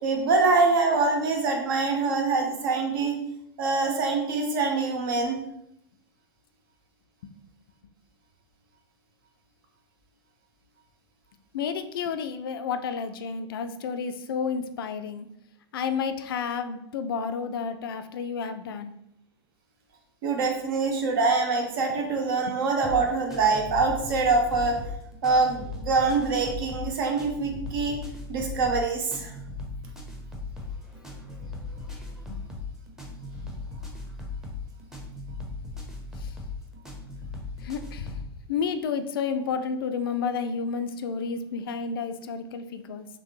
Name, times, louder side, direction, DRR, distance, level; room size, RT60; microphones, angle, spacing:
voice 1, 0.0-3.2 3.6-5.4 20.2-24.8 25.2-28.0 28.3-29.3, right 4 dB, 55° right, 2 dB, 0.9 m, -24 dB
voice 2, 11.5-15.3 15.7-18.9 22.5-22.6 32.3-32.4 36.2-36.3 37.6-43.1, left 6 dB, 60° left, 8 dB, 0.4 m, -31 dB
sound 1, 22.8-38.3, left 3 dB, 5° right, 0.7 m, -38 dB
3.7 x 3.2 x 3.0 m, 0.77 s
figure-of-eight pair, 95°, 14 cm